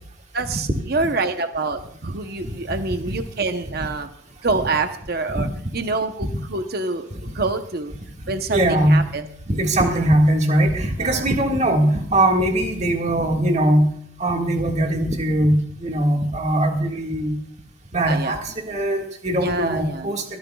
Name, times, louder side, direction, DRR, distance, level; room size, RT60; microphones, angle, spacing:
voice 1, 0.3-4.1 4.4-5.5 5.7-7.9 8.3-9.3 9.8-10.1 11.0-11.2 18.1-18.4 19.4-20.1, right 3 dB, 50° right, 7 dB, 0.8 m, -26 dB
voice 2, 8.5-9.1 9.5-13.9 14.2-17.4 17.9-20.4, right 1 dB, 35° right, 2 dB, 1.8 m, -20 dB
24.0 x 14.0 x 2.3 m, 0.67 s
head